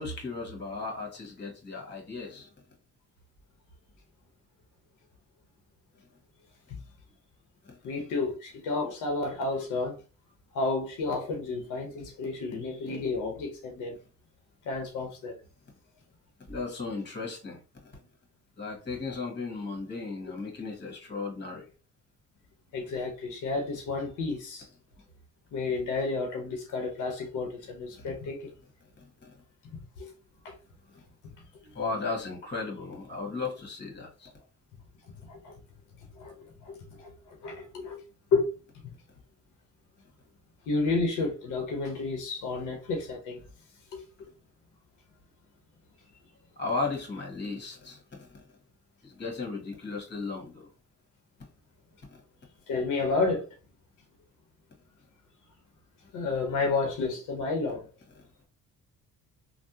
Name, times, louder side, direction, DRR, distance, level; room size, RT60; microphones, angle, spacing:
voice 1, 0.0-2.5 7.6-7.8 16.5-17.9 18.6-21.6 27.9-28.0 29.2-29.3 31.7-34.3 46.6-48.4 49.0-50.7 52.1-52.2, left 3 dB, 35° left, 1.6 m, -36 dB
voice 2, 7.8-10.0 10.5-14.0 14.6-15.3 22.7-24.7 25.5-28.5 29.7-30.1 30.4-30.5 35.2-35.5 36.1-38.0 38.3-38.5 40.7-43.4 43.9-44.0 52.7-53.5 56.1-57.9, left 3 dB, 90° left, 0.9 m, -31 dB
3.4 x 2.3 x 2.7 m
cardioid pair, 90°, 30 cm